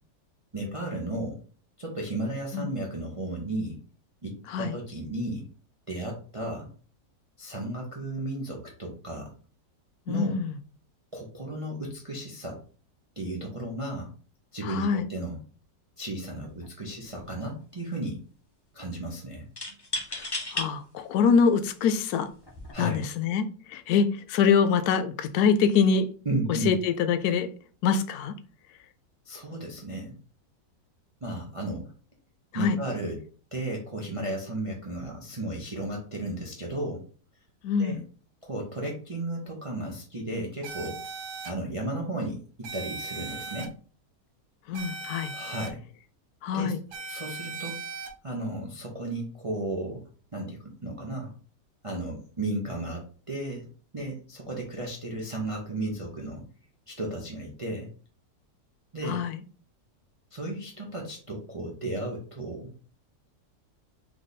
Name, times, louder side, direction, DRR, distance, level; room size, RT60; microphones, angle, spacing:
voice 1, 0.5-1.4 1.8-3.8 4.2-5.5 5.9-6.7 7.4-9.3 10.1-10.3 11.1-12.6 13.2-14.1 14.5-15.4 16.0-18.2 18.7-19.4 22.7-23.0 26.2-26.7 29.3-30.1 31.2-31.9 32.5-33.2 33.5-37.0 37.8-38.0 38.4-41.0 41.4-43.7 45.3-45.8 46.5-46.7 47.1-50.0 50.3-51.3 51.8-53.7 53.9-56.4 56.9-57.9 58.9-59.2 60.3-62.7, right 1 dB, 35° right, 0.5 m, -34 dB
voice 2, 10.1-10.6 14.6-15.1 20.1-20.3 20.5-22.3 22.8-26.1 26.5-27.5 27.8-28.3 32.5-32.8 37.6-38.0 44.7-45.3 46.4-46.8 59.1-59.4, left 6 dB, 70° left, 1.0 m, -24 dB
sound 1, 16.4-16.7 17.0-17.6 19.6-20.7 21.4-21.5 22.4-22.7, left 2 dB, 25° left, 0.5 m, -34 dB
sound 2, 40.6-41.5 42.6-43.7 44.7-45.7 46.9-48.1, right 3 dB, 75° right, 1.3 m, -38 dB
3.4 x 3.3 x 4.1 m
omnidirectional pair, 1.9 m